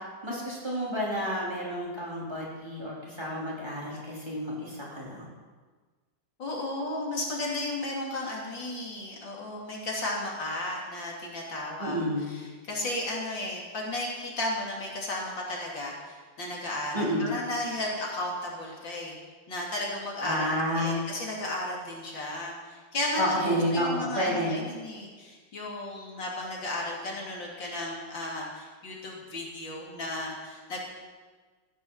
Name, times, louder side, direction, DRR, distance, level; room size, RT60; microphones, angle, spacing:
voice 1, 0.2-5.3 11.8-12.5 16.9-17.3 20.2-21.0 23.2-24.6, equal, 15° right, -6 dB, 4.1 m, -30 dB
voice 2, 6.4-12.0 12.3-19.2 19.5-30.8, left 1 dB, 85° left, -3 dB, 3.7 m, -34 dB
15.5 x 11.0 x 5.8 m, 1.4 s
omnidirectional pair, 2.0 m